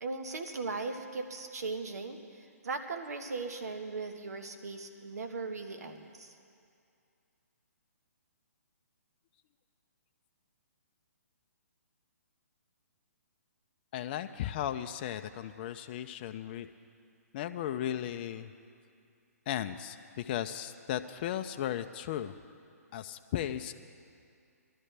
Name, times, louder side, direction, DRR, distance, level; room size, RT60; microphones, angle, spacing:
voice 1, 0.0-6.3, right 3 dB, 75° right, 6 dB, 1.3 m, -38 dB
voice 2, 13.9-16.7 17.3-18.5 19.5-22.3 22.9-23.7, left 11 dB, 35° left, 8 dB, 0.4 m, -36 dB
20.5 x 12.5 x 3.4 m, 2.4 s
hypercardioid pair, 140°, 9 cm